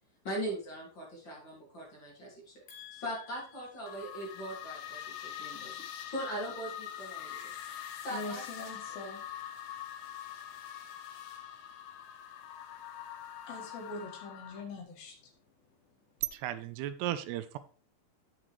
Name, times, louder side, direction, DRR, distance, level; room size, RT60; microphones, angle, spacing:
voice 1, 0.2-2.6 2.9-7.6 8.0-8.4, right 1 dB, 35° left, 2.4 m, -40 dB
voice 2, 2.7-3.3 8.1-9.2 13.5-15.3, left 3 dB, 65° left, 3.2 m, -43 dB
sound 1, 3.9-14.6, left 10 dB, 85° left, 3.1 m, -44 dB
voice 3, 16.2-17.6, right 13 dB, 85° right, 2.6 m, -35 dB
9.0 x 7.4 x 3.2 m
omnidirectional pair, 4.8 m